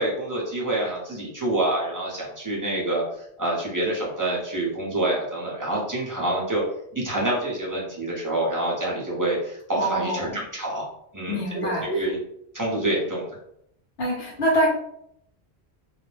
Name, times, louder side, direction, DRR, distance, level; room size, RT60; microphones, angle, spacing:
voice 1, 0.0-6.6 6.9-10.9 11.1-12.2 12.5-13.2, right 1 dB, 20° right, -5 dB, 0.6 m, -27 dB
voice 2, 9.8-10.4 11.3-12.1 14.0-14.7, right 1 dB, 70° left, -4 dB, 0.9 m, -25 dB
2.3 x 2.0 x 3.1 m, 0.73 s
omnidirectional pair, 1.1 m